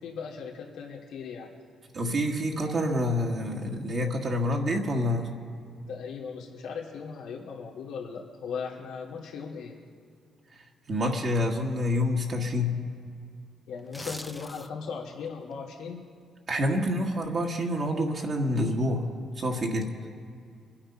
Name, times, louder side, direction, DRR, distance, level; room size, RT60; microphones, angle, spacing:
voice 1, 0.0-1.5 5.9-9.8 13.7-16.0, left 6 dB, 85° left, -2 dB, 2.4 m, -38 dB
voice 2, 1.9-5.3 10.9-12.8 16.5-19.1 19.4-19.9, left 1 dB, 45° right, -1 dB, 1.7 m, -27 dB
sound 1, 13.8-15.0 15.4-15.5, equal, 5° left, 0.7 m, -41 dB
24.0 x 8.8 x 5.5 m, 2.3 s
cardioid pair, 90°, 0 cm